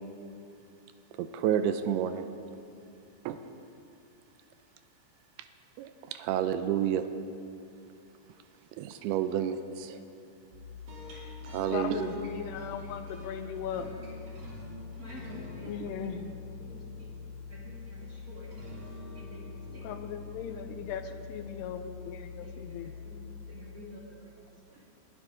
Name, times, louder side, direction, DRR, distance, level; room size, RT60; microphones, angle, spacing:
voice 1, 1.1-2.3 3.3-3.4 5.8-7.1 8.7-10.0 11.4-12.1, right 10 dB, 85° right, 2.5 m, -30 dB
sound 1, 10.5-24.1, left 4 dB, 65° right, 4.6 m, -44 dB
voice 2, 11.7-13.9 15.6-16.3 19.7-22.9, left 8 dB, 90° left, 2.8 m, -38 dB
voice 3, 13.4-13.9 14.2-14.4 15.0-16.3 16.6-17.1 17.5-18.5 19.1-20.6 21.1-21.6 22.3-24.9, equal, 35° right, 1.5 m, -51 dB
20.5 x 11.5 x 3.7 m
omnidirectional pair, 4.6 m